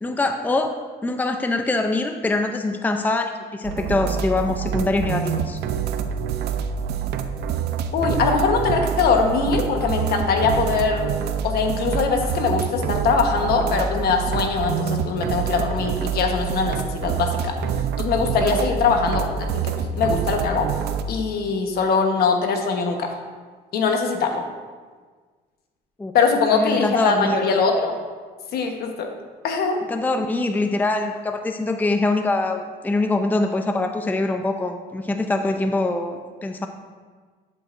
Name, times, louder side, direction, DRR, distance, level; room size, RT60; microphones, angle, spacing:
voice 1, 0.0-0.7 1.0-5.6 18.4-18.6 26.0-26.1 26.5-27.4 29.9-36.7, left 2 dB, 10° left, 5 dB, 0.5 m, -24 dB
sound 1, 3.6-21.0, right 7 dB, 75° right, 0.6 m, -26 dB
voice 2, 7.9-11.1 11.4-17.5 18.0-20.7 21.1-23.2 23.7-24.4 26.1-28.0 28.5-29.1 29.4-29.8, left 4 dB, 65° left, 4 dB, 1.2 m, -22 dB
12.0 x 7.8 x 2.6 m, 1.5 s
cardioid pair, 110°, 17 cm